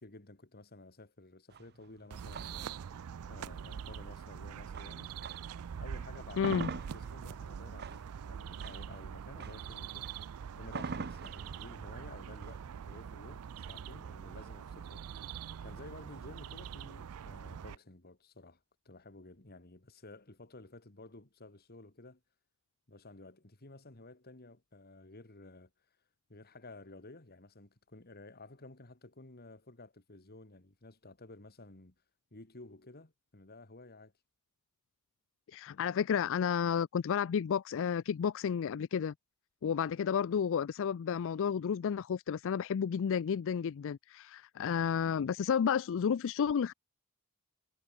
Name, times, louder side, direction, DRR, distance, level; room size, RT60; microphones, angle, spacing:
voice 1, 0.0-2.7 3.3-5.1 5.8-10.1 10.6-15.0 15.6-22.2 22.9-25.7 26.3-32.0 32.3-34.1, left 2 dB, 45° left, 2.4 m, -53 dB
sound 1, 1.5-5.7 6.0-14.0, right 4 dB, 50° right, 0.8 m, -45 dB
sound 2, 2.1-17.8, right 7 dB, 85° right, 0.4 m, -44 dB
voice 2, 6.4-6.7 35.5-39.1 39.6-46.7, left 7 dB, 65° left, 0.4 m, -31 dB
head